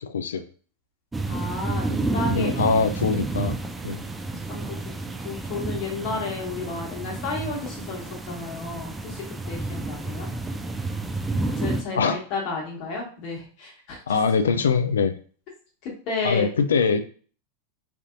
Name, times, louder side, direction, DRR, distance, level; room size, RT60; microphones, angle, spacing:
voice 1, 0.0-0.4 2.3-3.5 3.8-4.0 11.9-12.2 14.1-15.1 16.2-17.0, left 5 dB, 85° left, 9 dB, 0.3 m, -22 dB
sound 1, 1.1-11.8, right 2 dB, 10° right, 0.4 m, -30 dB
voice 2, 1.3-2.5 4.5-4.8 5.2-10.3 11.6-14.0 15.8-16.5, left 3 dB, 50° left, -2 dB, 1.5 m, -32 dB
3.4 x 2.7 x 2.5 m, 0.42 s
hypercardioid pair, 105°, 0 cm